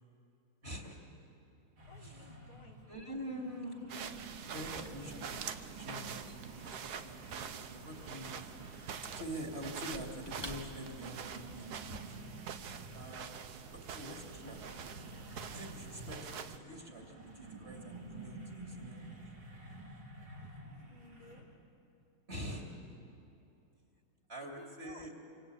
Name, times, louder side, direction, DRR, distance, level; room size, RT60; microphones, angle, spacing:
voice 1, 0.6-1.0 2.0-2.3 2.9-3.8 4.4-6.2 6.6-8.8 9.1-12.1 12.9-13.5 13.7-14.9 15.5-19.3 22.3-22.8 24.3-25.1, equal, 30° right, 1 dB, 3.2 m, -45 dB
sound 1, 1.8-21.4, right 2 dB, 75° right, 4.3 m, -52 dB
voice 2, 1.9-2.8 20.9-21.5 24.6-25.1, left 4 dB, 85° left, 2 dB, 2.9 m, -56 dB
Squeak / Wood, 3.9-11.1, left 1 dB, 15° left, 1.3 m, -54 dB
sound 2, 3.9-16.6, right 7 dB, 55° right, 1.3 m, -45 dB
26.5 x 25.0 x 8.7 m, 2.8 s
omnidirectional pair, 2.3 m